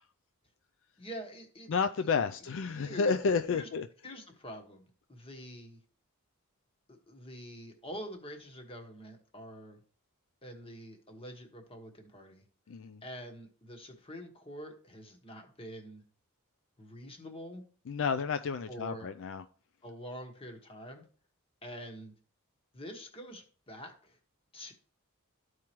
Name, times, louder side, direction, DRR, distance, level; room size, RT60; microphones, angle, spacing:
voice 1, 1.0-1.8 2.0-2.1 2.7-3.1 3.5-3.7 4.0-5.8 6.9-9.8 10.4-12.4 13.0-16.0 16.8-17.6 18.7-19.1 19.8-21.1 21.6-22.1 22.7-24.2 24.5-24.7, equal, 25° left, 1.3 m, -46 dB
voice 2, 1.7-3.9 12.7-13.0 17.9-19.4, left 5 dB, 60° left, 0.4 m, -31 dB
13.0 x 4.8 x 3.0 m
head